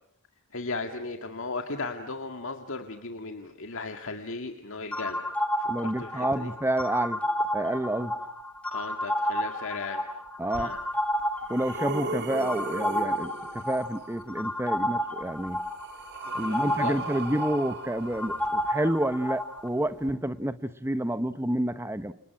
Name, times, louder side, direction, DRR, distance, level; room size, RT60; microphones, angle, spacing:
voice 1, 0.5-5.2 5.6-6.5 8.7-10.1 10.6-10.8 16.3-17.0, left 3 dB, 65° left, 5 dB, 2.1 m, -36 dB
sound 1, 4.9-19.7, equal, 5° left, 2.2 m, -31 dB
voice 2, 5.7-7.2 7.5-8.1 10.4-10.7 11.5-15.6 16.3-22.1, right 1 dB, 10° right, 12 dB, 1.1 m, -29 dB
sound 2, 10.5-10.6 11.2-14.0 15.2-19.1 20.0-20.1, right 3 dB, 50° right, 2.2 m, -38 dB
29.5 x 29.5 x 6.0 m, 0.70 s
head